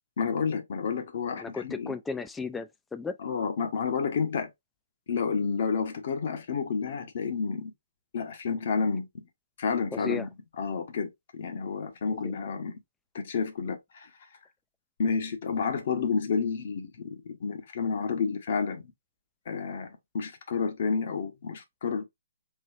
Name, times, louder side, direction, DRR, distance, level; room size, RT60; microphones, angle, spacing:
voice 1, 0.2-1.9 3.2-4.5 5.1-7.7 8.1-9.1 9.6-10.3 10.6-12.8 13.1-14.1 15.0-18.8 19.5-22.0, left 5 dB, 55° left, 1.0 m, -30 dB
voice 2, 1.4-3.2 9.9-10.3 12.2-12.3, left 4 dB, 10° left, 0.3 m, -34 dB
3.8 x 3.1 x 2.5 m
figure-of-eight pair, 135°, 0 cm